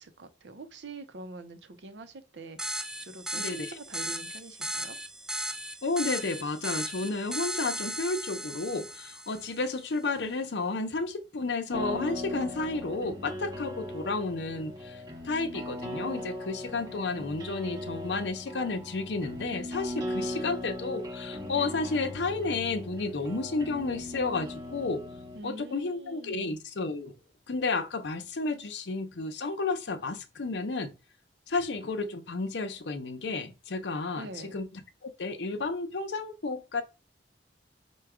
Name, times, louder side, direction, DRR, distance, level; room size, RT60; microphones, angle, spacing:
voice 1, 0.0-5.0 25.3-26.6 34.1-34.6, right 2 dB, 75° right, 0.6 m, -45 dB
sound 1, 2.6-9.7, right 1 dB, 5° right, 0.4 m, -36 dB
voice 2, 3.3-3.7 5.8-25.0 25.4-27.1 27.5-30.9 31.5-36.8, left 3 dB, 70° left, 0.6 m, -32 dB
sound 2, 11.7-25.4, left 1 dB, 20° right, 0.8 m, -38 dB
4.6 x 2.2 x 4.8 m
head